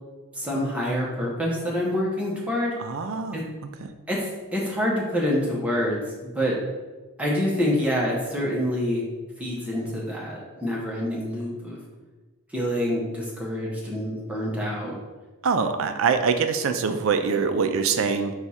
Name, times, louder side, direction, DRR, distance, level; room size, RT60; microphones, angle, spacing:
voice 1, 0.3-2.7 3.3-3.4 4.1-6.6 7.2-9.0 9.4-11.8 12.5-15.0, equal, 5° right, -4 dB, 0.8 m, -26 dB
voice 2, 2.8-3.4 3.8-3.9 15.4-18.3, right 5 dB, 65° right, 8 dB, 0.4 m, -24 dB
4.6 x 2.4 x 4.1 m, 1.3 s
head